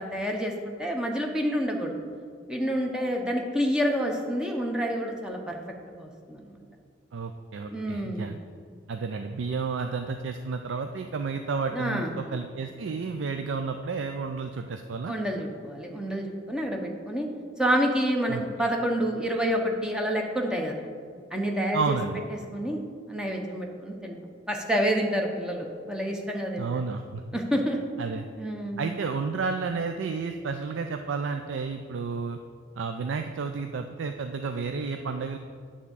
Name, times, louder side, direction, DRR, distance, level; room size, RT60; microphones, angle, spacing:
voice 1, 0.0-2.0 2.5-5.6 5.9-6.6 7.7-8.4 11.7-12.1 15.1-17.3 17.6-20.8 21.3-22.0 22.3-22.8 23.1-24.2 24.5-26.8 27.3-27.8 28.4-28.8, equal, 5° right, 1 dB, 0.7 m, -28 dB
voice 2, 7.1-8.4 8.9-15.1 18.3-18.4 21.7-22.3 26.6-27.2 28.0-28.3 28.8-32.4 32.8-35.4, right 4 dB, 80° right, 6 dB, 0.4 m, -31 dB
9.5 x 3.6 x 6.9 m, 2.2 s
head